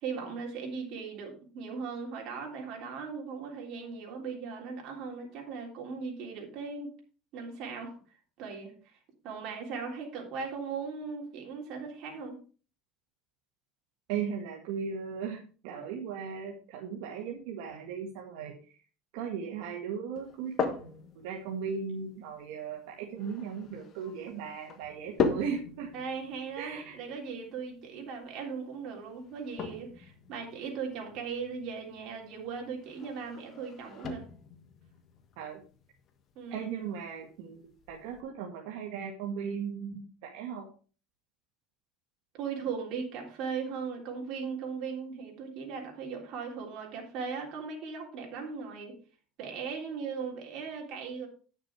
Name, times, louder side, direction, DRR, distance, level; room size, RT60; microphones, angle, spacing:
voice 1, 0.0-6.9 7.3-7.9 8.4-8.9 9.2-12.4 25.9-34.2 36.4-36.6 42.3-49.0 49.4-51.3, right 5 dB, 55° right, 0 dB, 3.5 m, -38 dB
voice 2, 14.1-18.8 19.1-25.9 26.6-27.0 35.4-35.6 36.5-40.7, right 6 dB, 75° right, -1 dB, 1.8 m, -37 dB
sound 1, 20.1-38.2, left 5 dB, 35° left, 1.4 m, -40 dB
9.5 x 6.6 x 4.6 m, 0.38 s
cardioid pair, 145°, 0 cm